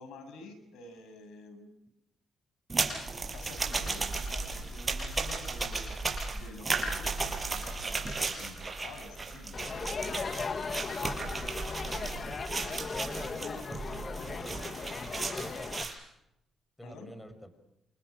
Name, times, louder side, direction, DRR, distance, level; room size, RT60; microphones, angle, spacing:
voice 1, 0.0-1.7 2.8-3.0 3.3-6.0 6.3-9.8 10.6-10.8 13.4-13.6 14.1-14.4 16.8-17.1, left 3 dB, 80° left, 8 dB, 7.5 m, -49 dB
sound 1, 2.7-15.9, right 3 dB, 25° right, 6.3 m, -35 dB
Crowd, 9.5-15.8, left 5 dB, 40° left, 1.5 m, -37 dB
voice 2, 12.9-13.4 13.7-15.9 16.8-17.5, equal, 10° left, 11 dB, 5.4 m, -46 dB
29.0 x 28.5 x 6.1 m, 0.84 s
cardioid pair, 90°, 0 cm